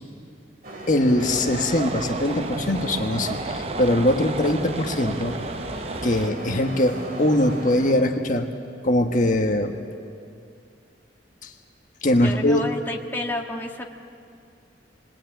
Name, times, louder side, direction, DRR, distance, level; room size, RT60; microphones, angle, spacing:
sound 1, 0.6-7.9, right 1 dB, 50° right, 3.7 m, -36 dB
voice 1, 0.9-5.4 6.0-8.5 8.8-9.8 11.4-11.5 12.0-12.6, left 1 dB, 45° left, 4 dB, 1.5 m, -22 dB
sound 2, 1.2-6.3, right 3 dB, 35° right, 0.7 m, -33 dB
voice 2, 12.2-13.9, left 1 dB, 10° left, 0 dB, 1.6 m, -30 dB
29.0 x 22.0 x 9.1 m, 2.4 s
head